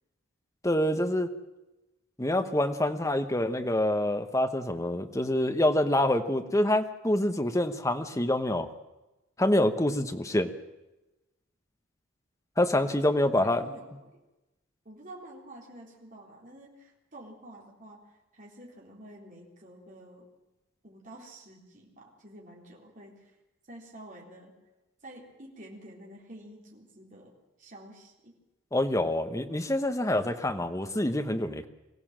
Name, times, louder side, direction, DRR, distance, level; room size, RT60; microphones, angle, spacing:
voice 1, 0.6-1.3 2.2-8.7 9.4-10.5 12.6-13.7 28.7-31.7, left 1 dB, 15° left, 8 dB, 1.1 m, -26 dB
voice 2, 12.9-14.2 14.8-18.0 18.3-20.3 20.8-23.4 23.7-24.5 25.0-27.3 27.6-28.3, right 1 dB, 40° right, -2 dB, 4.0 m, -49 dB
23.0 x 16.0 x 7.5 m, 1.0 s
head